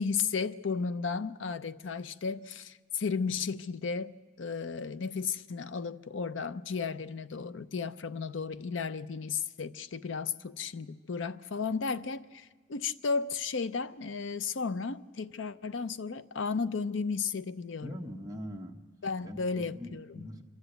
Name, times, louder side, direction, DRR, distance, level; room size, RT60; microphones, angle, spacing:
voice 1, 0.0-18.1 19.0-20.3, left 5 dB, 65° left, 0.5 m, -34 dB
voice 2, 17.8-18.8 19.2-20.4, equal, 20° right, 1.1 m, -42 dB
26.0 x 13.0 x 8.0 m
head